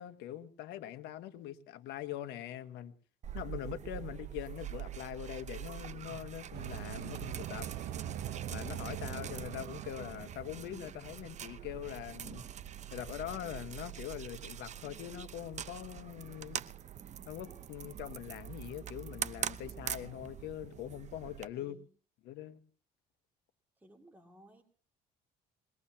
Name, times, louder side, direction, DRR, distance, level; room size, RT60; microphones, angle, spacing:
voice 1, 0.0-2.9 3.3-7.7 8.5-12.4 12.9-16.6 17.3-21.8 22.2-22.6, left 12 dB, 85° left, 10 dB, 1.4 m, -43 dB
sound 1, 3.2-21.5, right 10 dB, 45° right, 0.7 m, -44 dB
sound 2, 6.5-13.5, right 10 dB, 75° right, 1.0 m, -43 dB
voice 2, 21.5-21.9 23.8-24.6, right 1 dB, 10° right, 1 dB, 2.4 m, -58 dB
22.0 x 20.5 x 2.9 m, 0.39 s
cardioid pair, 110°, 17 cm